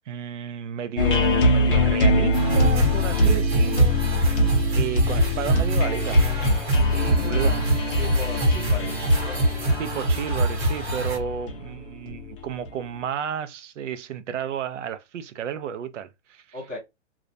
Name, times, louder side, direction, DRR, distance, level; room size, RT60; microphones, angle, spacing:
voice 1, 0.1-4.3 4.7-6.3 6.9-7.7 8.8-9.0 9.8-16.6, right 8 dB, 85° right, 0.5 m, -32 dB
sound 1, 1.0-12.7, left 1 dB, 50° left, 0.6 m, -23 dB
sound 2, 2.3-11.2, right 1 dB, 60° right, 0.9 m, -24 dB
voice 2, 7.0-7.6 8.0-9.5 16.5-16.8, left 2 dB, 15° right, 0.6 m, -37 dB
2.3 x 2.0 x 2.5 m
hypercardioid pair, 175°, 36 cm